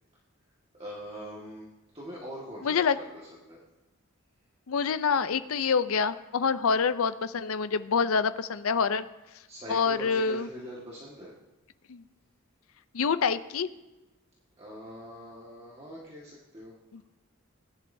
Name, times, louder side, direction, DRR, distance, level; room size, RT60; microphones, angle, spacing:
voice 1, 0.7-1.7 1.9-3.0 3.4-3.6 9.5-11.3 14.6-16.7, equal, 25° right, -5 dB, 1.7 m, -42 dB
voice 2, 2.6-3.0 4.7-9.0 9.7-10.5 11.9-12.0 12.9-13.7 16.9-17.0, left 5 dB, 80° left, 13 dB, 0.5 m, -26 dB
19.5 x 10.5 x 2.7 m, 1.0 s
head